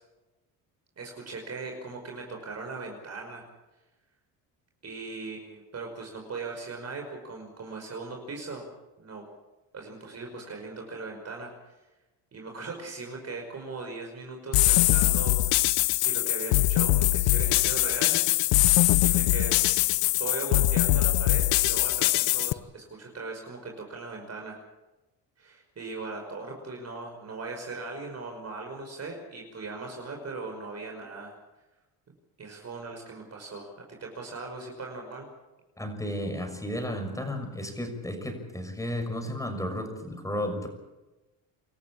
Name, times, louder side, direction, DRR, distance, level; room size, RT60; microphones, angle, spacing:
voice 1, 1.0-3.4 4.8-8.6 9.0-9.2 9.7-11.8 12.3-15.7 16.0-18.2 19.0-19.6 20.2-24.6 25.4-31.3 32.4-35.3, right 3 dB, 35° right, 2 dB, 5.5 m, -39 dB
sound 1, 14.5-22.5, left 18 dB, 80° left, 0.9 m, -22 dB
voice 2, 35.8-40.7, left 1 dB, 10° left, 6 dB, 6.4 m, -33 dB
27.0 x 14.0 x 8.7 m, 1.1 s
cardioid pair, 95°, 42 cm